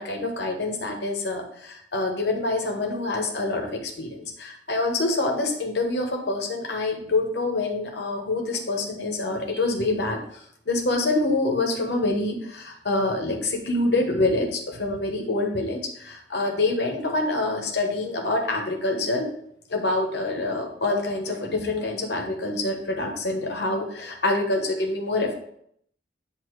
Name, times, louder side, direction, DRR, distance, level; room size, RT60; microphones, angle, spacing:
voice 1, 0.0-19.3 19.7-25.3, left 2 dB, 70° left, 2 dB, 1.1 m, -26 dB
8.4 x 2.8 x 4.6 m, 0.68 s
head